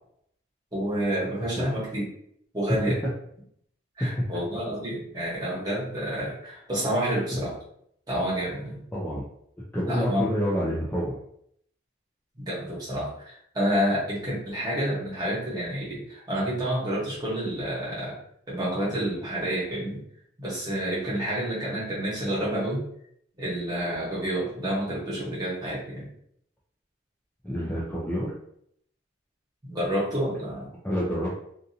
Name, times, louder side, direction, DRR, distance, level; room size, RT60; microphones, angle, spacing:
voice 1, 0.7-2.0 2.5-3.0 4.0-7.6 8.1-8.8 9.8-10.3 12.4-18.1 18.5-20.0 20.4-22.8 23.4-26.1 29.6-30.7, equal, 20° right, -7 dB, 1.0 m, -29 dB
voice 2, 8.9-9.2 9.7-11.2 27.4-28.3 30.8-31.3, equal, 10° left, -6 dB, 0.4 m, -28 dB
2.6 x 2.3 x 2.7 m, 0.69 s
head